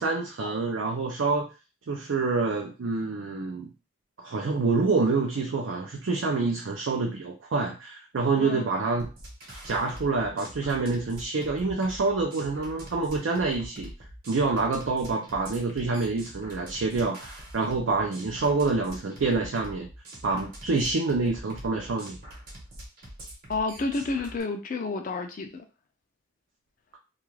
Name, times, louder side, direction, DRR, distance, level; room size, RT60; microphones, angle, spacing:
voice 1, 0.0-1.5 1.9-3.7 4.2-9.1 9.6-13.9 14.3-19.9 20.2-22.2, right 3 dB, 75° right, 0 dB, 0.5 m, -27 dB
sound 1, 9.0-24.4, right 1 dB, 45° right, 1.0 m, -44 dB
voice 2, 23.5-25.6, left 3 dB, 40° left, 5 dB, 0.4 m, -30 dB
2.3 x 2.3 x 3.1 m, 0.31 s
head